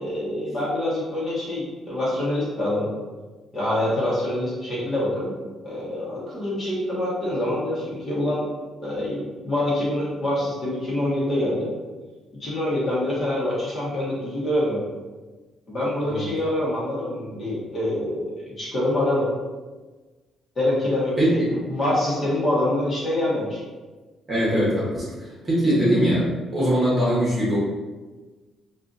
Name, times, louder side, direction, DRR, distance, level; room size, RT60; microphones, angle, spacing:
voice 1, 0.0-2.9 3.5-5.3 5.6-8.5 8.8-11.7 12.4-14.8 15.7-19.3 20.5-23.6, left 1 dB, 30° left, -8 dB, 1.3 m, -25 dB
voice 2, 21.2-21.5 24.3-27.6, equal, 20° right, -8 dB, 1.3 m, -22 dB
5.5 x 2.5 x 2.6 m, 1.3 s
cardioid pair, 155°, 0 cm